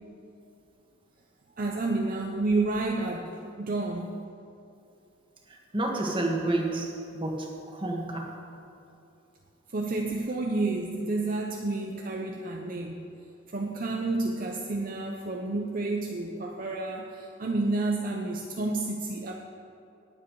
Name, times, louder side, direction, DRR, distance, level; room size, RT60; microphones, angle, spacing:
voice 1, 1.6-4.2 9.7-13.0 13.5-19.3, right 2 dB, 45° right, 1 dB, 0.7 m, -30 dB
voice 2, 5.5-6.9 7.1-8.3, right 2 dB, 25° right, 0 dB, 1.6 m, -30 dB
18.5 x 7.4 x 4.7 m, 2.7 s
head